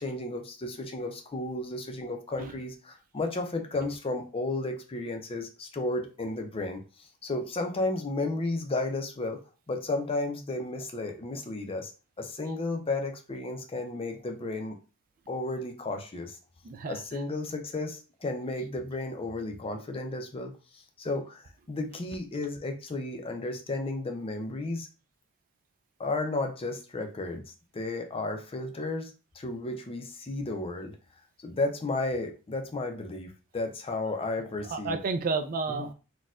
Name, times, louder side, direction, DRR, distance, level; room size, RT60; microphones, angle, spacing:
voice 1, 0.0-9.4 9.7-11.9 12.2-14.8 15.3-16.4 16.8-24.9 26.0-27.4 27.7-30.9 31.4-35.0 35.7-35.9, left 2 dB, 25° left, 0.5 m, -33 dB
voice 2, 16.6-17.0 34.7-35.9, right 4 dB, 40° right, 0.3 m, -31 dB
4.2 x 2.2 x 2.4 m
head